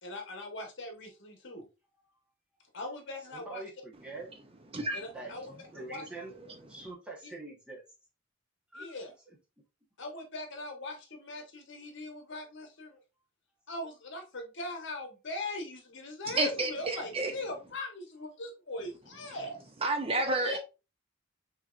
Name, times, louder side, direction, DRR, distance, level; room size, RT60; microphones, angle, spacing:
voice 1, 0.0-1.6 2.7-3.6 4.9-5.4 5.8-6.0 7.2-7.3 8.7-9.1 10.0-13.0 13.7-19.6 20.4-20.6, left 2 dB, 60° left, 1.2 m, -40 dB
voice 2, 3.3-4.3 5.1-6.3 6.7-7.8 8.7-8.9 9.3-9.4, right 2 dB, 5° right, 1.1 m, -44 dB
voice 3, 16.3-17.3 19.8-20.6, right 2 dB, 30° right, 0.6 m, -30 dB
5.5 x 3.0 x 2.5 m
head